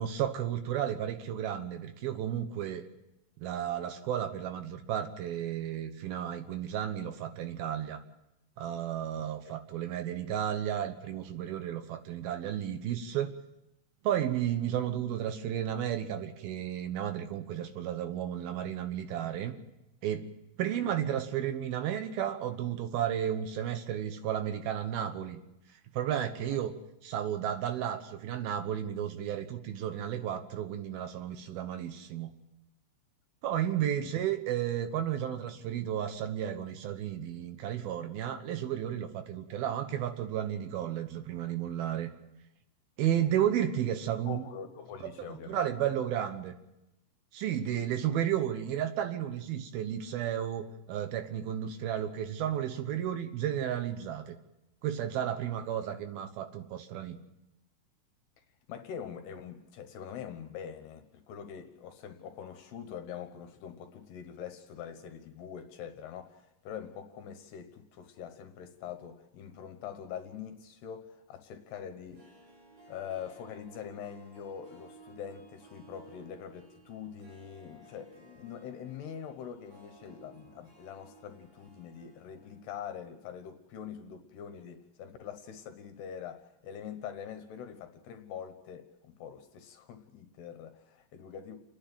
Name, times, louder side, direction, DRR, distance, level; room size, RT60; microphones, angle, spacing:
voice 1, 0.0-2.8 3.4-8.0 8.6-13.3 14.0-19.5 20.0-20.3 20.6-25.4 25.9-26.7 27.0-32.3 33.4-42.1 43.0-44.4 45.2-46.5 47.3-54.4 54.8-57.2, right 10 dB, 70° right, 8 dB, 2.4 m, -33 dB
voice 2, 9.2-9.5 26.5-26.6 33.8-34.1 44.3-45.6 58.7-72.5 72.9-91.6, left 8 dB, 70° left, 7 dB, 2.8 m, -44 dB
Harp, 72.0-83.0 83.2-83.3, right 4 dB, 45° right, 6.2 m, -57 dB
30.0 x 10.5 x 9.1 m, 0.90 s
omnidirectional pair, 5.6 m